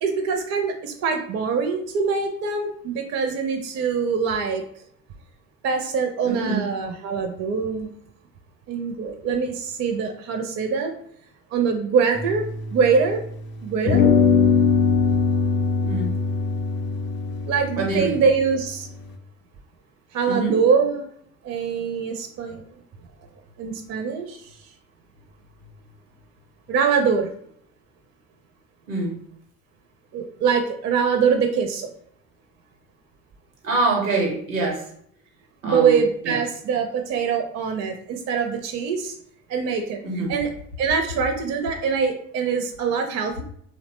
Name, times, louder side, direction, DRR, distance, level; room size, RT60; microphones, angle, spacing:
voice 1, 0.0-4.6 5.6-7.9 8.7-10.9 11.5-12.5 12.7-13.2 13.6-14.1 17.4-18.9 20.1-21.0 21.4-22.6 23.6-24.5 26.7-27.3 30.1-31.9 35.6-39.2 39.5-40.5 40.8-43.4, right 5 dB, 45° right, 5 dB, 0.5 m, -23 dB
voice 2, 6.2-6.6 15.8-16.1 17.8-18.2 20.3-20.6 28.9-29.2 33.6-34.8 35.6-36.0 36.2-36.4 40.0-40.3, right 3 dB, 90° right, 0 dB, 0.9 m, -25 dB
sound 1, 12.1-13.4 13.9-19.1, left 5 dB, 30° left, 0.4 m, -22 dB
2.7 x 2.1 x 3.0 m, 0.65 s
hypercardioid pair, 55°, 38 cm